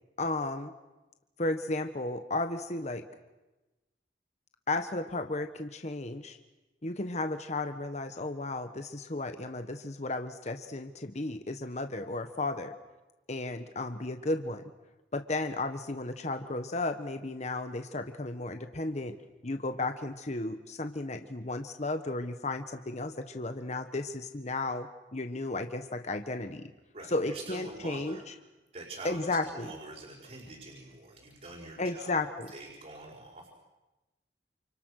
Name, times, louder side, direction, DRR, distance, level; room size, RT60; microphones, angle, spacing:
voice 1, 0.2-0.7 1.4-3.0 4.7-6.4 6.8-12.7 13.3-14.7 15.1-19.2 19.4-26.7 27.1-28.2 29.0-29.7 31.8-32.5, left 2 dB, 40° left, 7 dB, 1.3 m, -34 dB
voice 2, 26.9-28.3 28.7-32.2 32.5-33.5, right 2 dB, 40° right, -2 dB, 5.5 m, -45 dB
29.0 x 28.5 x 6.6 m, 1.1 s
head